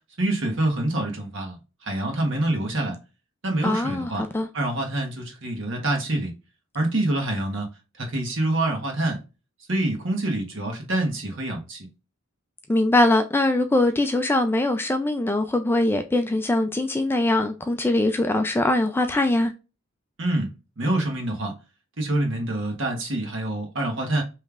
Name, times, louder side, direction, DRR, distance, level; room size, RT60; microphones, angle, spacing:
voice 1, 0.2-1.6 1.8-2.9 3.4-4.2 4.5-6.3 6.7-7.7 8.0-9.2 9.7-11.9 20.2-20.5 20.8-21.5 22.0-24.2, right 1 dB, 55° right, 1.4 m, -26 dB
voice 2, 3.6-4.5 12.7-19.5, left 2 dB, 10° left, 0.3 m, -22 dB
5.2 x 3.2 x 2.4 m
head